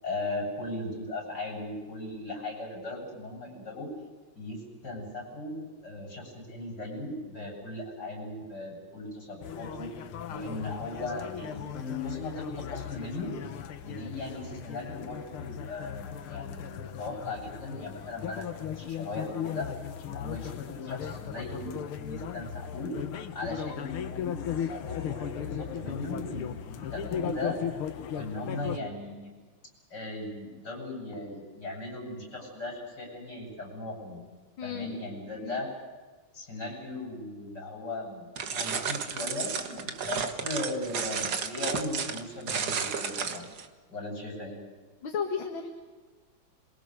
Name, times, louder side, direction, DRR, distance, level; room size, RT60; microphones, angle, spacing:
voice 1, 0.0-3.9 4.4-9.9 10.3-13.3 13.8-19.7 20.0-21.7 22.0-22.9 23.3-27.6 28.1-29.3 29.9-34.2 34.6-35.7 36.3-43.5 43.9-44.6, left 2 dB, 50° left, 1 dB, 8.2 m, -38 dB
sound 1, 9.4-28.8, left 9 dB, 80° left, 2.0 m, -37 dB
voice 2, 34.6-35.0 35.4-35.6 45.0-45.7, left 6 dB, 65° left, 3 dB, 2.5 m, -33 dB
sound 2, 38.4-43.7, right 6 dB, 50° right, 1.9 m, -32 dB
27.0 x 23.0 x 6.6 m, 1.4 s
omnidirectional pair, 2.3 m